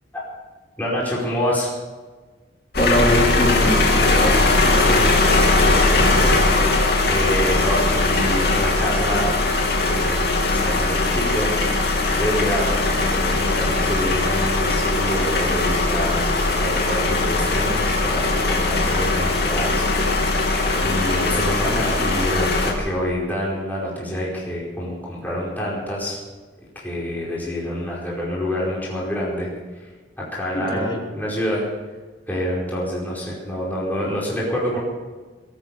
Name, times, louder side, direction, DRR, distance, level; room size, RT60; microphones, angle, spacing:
voice 1, 0.8-1.7 5.6-6.4 7.1-9.4 9.8-10.2 10.5-11.9 12.2-16.2 16.5-20.4 20.7-26.2 26.7-29.5 30.2-31.6 32.3-34.8, equal, 10° left, -6 dB, 4.9 m, -27 dB
sound 1, 2.7-22.7, left 2 dB, 60° left, 3.0 m, -20 dB
voice 2, 2.8-5.2 30.5-31.0, equal, 25° left, -1 dB, 3.3 m, -23 dB
21.5 x 9.2 x 7.0 m, 1.3 s
head